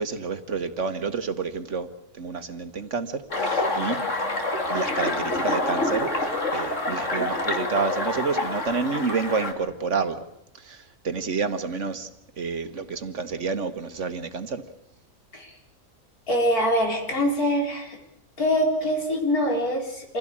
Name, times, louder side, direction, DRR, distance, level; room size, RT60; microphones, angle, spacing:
voice 1, 0.0-1.9 2.1-4.0 4.7-10.3 10.6-12.1 12.4-14.6, right 5 dB, 55° right, 9 dB, 1.6 m, -29 dB
sound 1, 3.3-9.5, left 2 dB, 55° left, 3.0 m, -27 dB
voice 2, 16.3-18.0 18.4-20.2, equal, 80° left, 1 dB, 4.8 m, -24 dB
26.5 x 16.5 x 8.7 m, 0.78 s
omnidirectional pair, 1.5 m